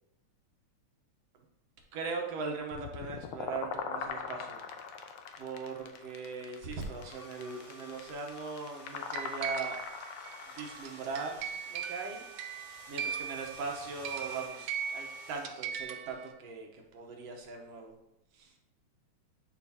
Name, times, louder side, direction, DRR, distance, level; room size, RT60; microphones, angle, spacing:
voice 1, 1.9-4.6 5.4-9.8 10.6-12.2 12.9-17.9 18.4-18.5, right 4 dB, 65° right, 2 dB, 2.0 m, -40 dB
sound 1, 2.7-10.8, left 6 dB, 80° left, 1.3 m, -41 dB
sound 2, 6.8-15.9, equal, 20° left, 2.6 m, -52 dB
sound 3, 9.1-16.3, right 8 dB, 90° right, 1.3 m, -39 dB
10.5 x 5.1 x 2.9 m, 0.86 s
omnidirectional pair, 3.3 m